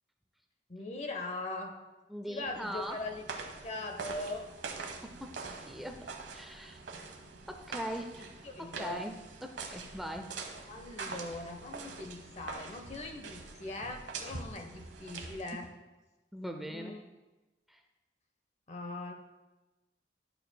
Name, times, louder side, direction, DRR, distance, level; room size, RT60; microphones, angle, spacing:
voice 1, 0.7-1.7 2.3-3.2 3.6-4.5 6.9-7.1 8.1-9.1 10.7-15.7 16.7-17.0 18.7-19.1, left 2 dB, 40° left, 4 dB, 0.7 m, -41 dB
voice 2, 2.1-3.0 4.8-5.3 5.7-6.8 7.5-8.3 8.6-10.4 16.3-16.9 17.7-17.8, equal, ahead, 4 dB, 0.4 m, -41 dB
sound 1, 2.4-15.7, right 4 dB, 85° right, 0.9 m, -44 dB
11.5 x 6.5 x 2.2 m, 1.1 s
head